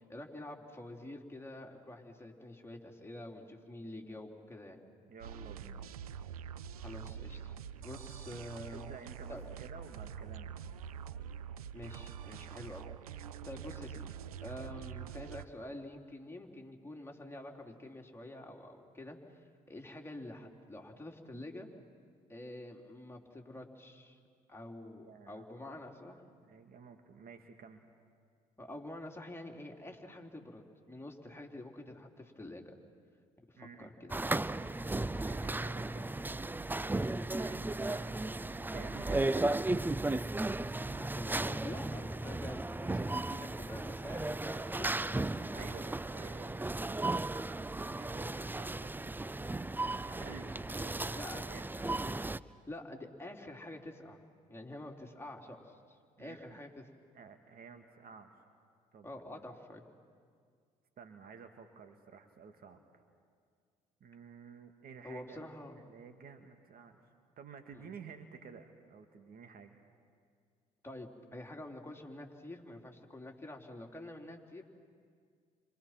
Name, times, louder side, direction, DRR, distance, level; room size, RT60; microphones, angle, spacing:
voice 1, 0.1-4.8 6.8-8.9 9.3-9.4 11.7-19.4 19.7-21.7 22.3-24.2 24.5-26.2 28.6-32.6 33.5-34.2 37.4-38.0 40.9-45.7 51.1-51.4 52.7-54.2 54.5-56.8 59.0-59.8 65.0-65.8 67.7-67.9 70.8-74.6, left 1 dB, 15° left, 1 dB, 3.7 m, -47 dB
voice 2, 5.1-5.9 8.7-10.6 25.0-25.5 26.4-27.8 33.6-33.9 35.2-36.3 37.3-38.2 38.7-39.6 45.5-49.2 50.1-51.2 51.5-52.0 56.2-56.6 57.1-58.3 58.9-59.4 61.0-63.0 64.0-67.0 67.4-69.8, right 6 dB, 55° right, 6 dB, 2.3 m, -52 dB
sound 1, 5.2-15.5, right 8 dB, 90° right, 0.6 m, -45 dB
sound 2, 34.1-52.4, right 2 dB, 10° right, 0.6 m, -35 dB
30.0 x 26.0 x 6.0 m, 2.1 s
hypercardioid pair, 50°, 18 cm